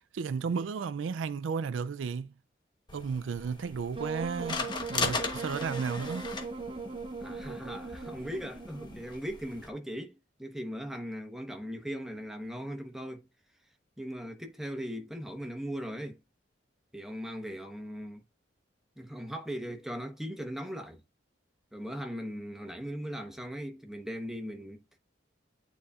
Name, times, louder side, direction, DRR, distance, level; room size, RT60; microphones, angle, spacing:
voice 1, 0.1-2.3 2.9-6.3, right 5 dB, 80° right, 0.4 m, -33 dB
sound 1, 2.9-9.7, left 4 dB, 25° left, 1.0 m, -38 dB
Wind instrument woodwind instrument, 3.9-9.0, right 3 dB, 30° right, 0.6 m, -39 dB
voice 2, 7.2-13.3 14.0-16.2 16.9-18.2 19.0-21.0 21.7-24.8, equal, ahead, 1.0 m, -39 dB
9.6 x 4.0 x 2.4 m
head